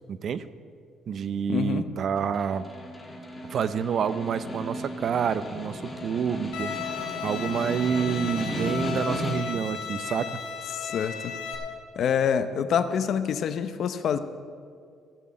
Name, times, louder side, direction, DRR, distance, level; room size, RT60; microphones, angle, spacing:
voice 1, 0.1-0.5 1.1-2.7 3.4-10.4, right 7 dB, 50° right, 14 dB, 0.5 m, -28 dB
voice 2, 1.5-1.9 10.7-11.3 12.0-14.2, left 7 dB, 55° left, 11 dB, 0.7 m, -26 dB
Snare drum, 2.2-9.7, equal, 15° left, 2.0 m, -35 dB
Bowed string instrument, 6.5-11.5, left 6 dB, 80° left, 1.9 m, -35 dB
15.5 x 6.1 x 7.6 m, 2.2 s
cardioid pair, 130°, 0 cm